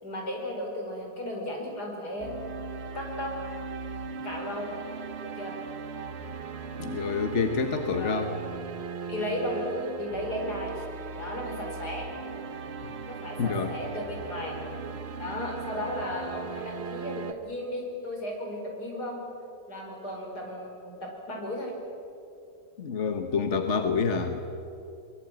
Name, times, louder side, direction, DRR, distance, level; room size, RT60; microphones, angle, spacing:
voice 1, 0.0-2.3 2.9-3.3 4.2-4.7 5.2-5.6 8.0-8.3 9.1-10.8 11.2-12.1 13.1-14.6 15.2-19.2 19.7-21.7 24.1-24.2, left 1 dB, 60° left, 1 dB, 5.7 m, -35 dB
sound 1, 2.2-17.3, right 5 dB, 45° right, 1.1 m, -38 dB
voice 2, 6.8-8.4 13.4-13.7 22.8-24.4, left 5 dB, 45° left, 7 dB, 1.5 m, -27 dB
23.5 x 22.0 x 9.1 m, 2.7 s
omnidirectional pair, 1.9 m